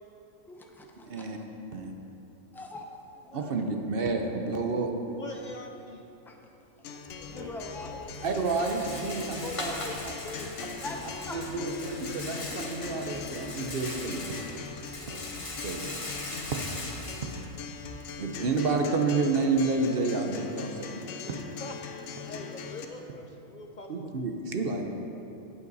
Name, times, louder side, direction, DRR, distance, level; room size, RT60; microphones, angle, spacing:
voice 1, 0.5-1.3 2.5-3.7 6.3-8.2 10.8-11.0 11.3-11.4, left 2 dB, 5° left, 2 dB, 0.4 m, -43 dB
voice 2, 1.1-1.4 1.7-1.9 3.3-4.9 8.2-9.7 11.3-14.2 15.1-15.2 15.6-16.0 18.2-21.1 23.9-24.9, right 3 dB, 50° right, 3 dB, 0.9 m, -29 dB
voice 3, 5.2-6.1 9.1-10.6 21.2-21.8 22.2-24.1, left 2 dB, 55° left, 3 dB, 0.5 m, -43 dB
Acoustic guitar, 6.8-22.9, left 6 dB, 70° left, 1.0 m, -41 dB
Rattle, 7.1-18.1, left 2 dB, 30° left, 0.9 m, -40 dB
16.0 x 5.6 x 4.0 m, 2.9 s
omnidirectional pair, 1.4 m